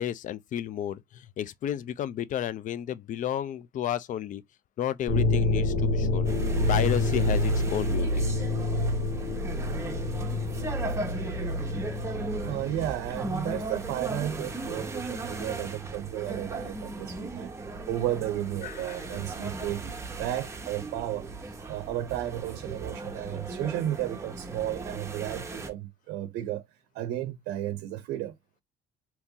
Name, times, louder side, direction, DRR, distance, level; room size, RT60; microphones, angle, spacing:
voice 1, 0.0-4.4 4.8-6.3 6.7-8.3 18.6-19.0, left 10 dB, 50° left, 0.4 m, -32 dB
sound 1, 5.1-14.5, left 2 dB, 80° left, 1.5 m, -28 dB
sound 2, 6.2-25.7, right 2 dB, 15° right, 1.0 m, -37 dB
voice 2, 10.8-17.5 17.9-19.9 20.2-26.6 26.9-28.4, right 13 dB, 85° right, 0.5 m, -33 dB
2.9 x 2.7 x 3.6 m
cardioid pair, 110°, 17 cm